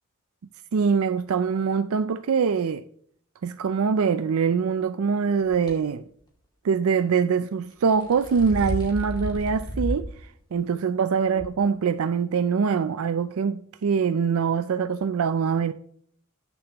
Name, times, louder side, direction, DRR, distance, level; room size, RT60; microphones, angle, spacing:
voice 1, 0.7-2.9 3.4-6.0 6.6-15.7, right 6 dB, 80° right, 0.4 m, -24 dB
sound 1, 5.5-5.7 7.7-10.1 10.5-10.6 11.4-11.5, equal, 20° left, 2.5 m, -31 dB
19.5 x 7.0 x 3.0 m
head